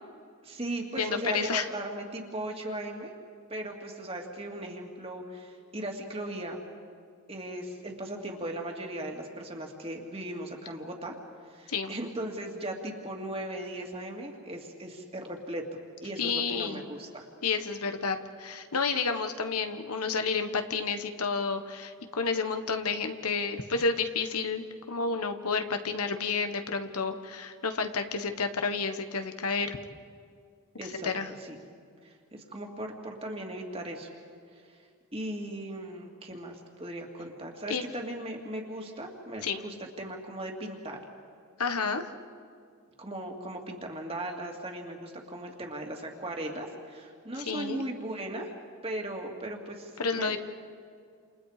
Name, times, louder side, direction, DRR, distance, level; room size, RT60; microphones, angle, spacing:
voice 1, 0.4-3.1 3.5-6.6 7.3-11.2 11.4-15.7 16.0-17.3 30.8-31.1 31.4-31.6 32.0-34.1 34.7-34.8 35.1-41.0 43.0-48.5 48.8-50.4, right 1 dB, 25° right, 1 dB, 2.5 m, -38 dB
voice 2, 1.0-1.7 11.7-11.9 16.2-16.8 17.4-29.8 30.9-31.3 37.7-37.8 39.4-39.6 41.6-42.1 47.4-47.8 50.0-50.4, left 4 dB, 90° left, 7 dB, 1.5 m, -30 dB
29.0 x 28.5 x 5.1 m, 2.2 s
head